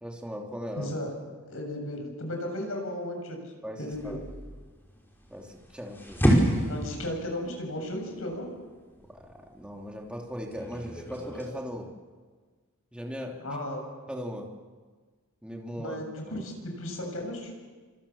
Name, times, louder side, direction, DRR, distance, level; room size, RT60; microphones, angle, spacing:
voice 1, 0.0-0.9 3.6-4.2 5.3-6.2 9.1-11.9 12.9-13.4 14.1-14.5 15.4-16.0 16.2-16.4, equal, 5° right, 0 dB, 3.1 m, -38 dB
voice 2, 0.8-1.1 1.5-3.4 3.8-4.2 6.6-8.5 13.4-13.8 15.8-17.5, left 1 dB, 75° left, 3 dB, 7.3 m, -35 dB
sound 1, 3.9-11.5, equal, 10° left, 5.4 m, -30 dB
27.0 x 26.5 x 7.2 m, 1.4 s
head